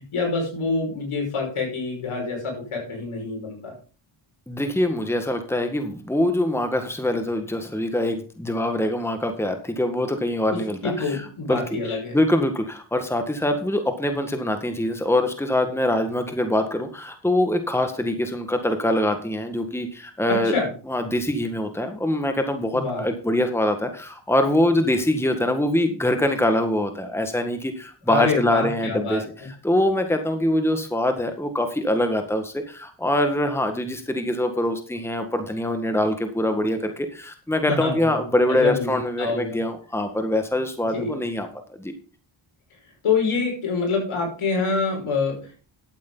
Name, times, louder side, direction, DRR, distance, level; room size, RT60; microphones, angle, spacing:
voice 1, 0.1-3.7 10.5-12.2 20.3-20.7 22.7-23.0 28.1-29.5 37.7-39.6 40.9-41.1 43.0-45.6, left 4 dB, 75° left, 0 dB, 5.9 m, -26 dB
voice 2, 4.5-11.2 11.5-11.6 12.1-20.5 20.9-29.2 29.6-41.5 41.8-41.9, left 1 dB, 5° left, 7 dB, 1.8 m, -24 dB
12.5 x 8.6 x 4.0 m, 0.37 s
cardioid pair, 65°, 50 cm